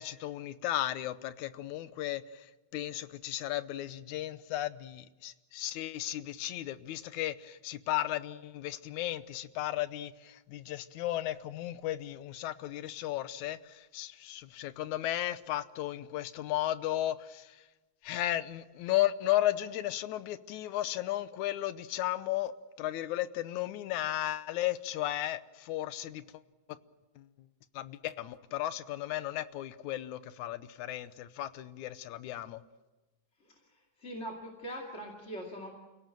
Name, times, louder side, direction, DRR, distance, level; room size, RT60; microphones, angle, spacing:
voice 1, 0.0-17.6 18.0-26.2 27.2-27.3 27.7-32.6, left 14 dB, 85° left, 14 dB, 2.3 m, -35 dB
voice 2, 33.4-35.7, equal, 25° left, 0 dB, 2.6 m, -42 dB
28.5 x 17.5 x 7.7 m, 1.2 s
omnidirectional pair, 3.3 m